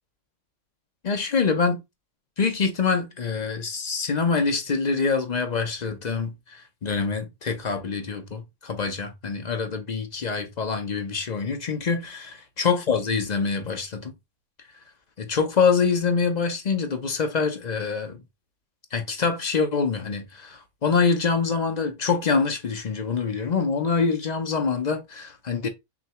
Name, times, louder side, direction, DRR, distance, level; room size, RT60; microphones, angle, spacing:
voice 1, 1.0-1.8 2.4-14.1 15.2-18.2 18.9-25.7, left 5 dB, 45° left, 0.6 m, -25 dB
6.2 x 2.3 x 2.8 m
omnidirectional pair, 1.5 m